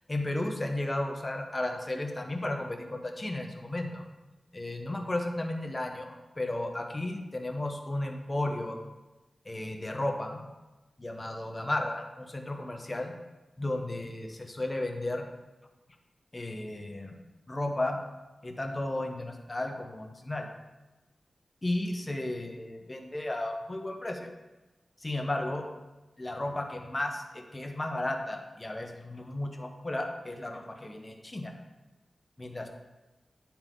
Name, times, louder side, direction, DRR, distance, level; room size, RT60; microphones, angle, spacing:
voice 1, 0.1-4.0 4.5-8.8 9.4-10.4 11.0-13.1 13.6-15.3 16.3-17.2 17.5-18.0 18.4-20.5 21.6-24.3 25.0-25.7 26.2-31.5 32.4-32.7, left 1 dB, 30° left, 3 dB, 1.2 m, -34 dB
10.5 x 4.4 x 3.9 m, 1.1 s
cardioid pair, 50°, 0 cm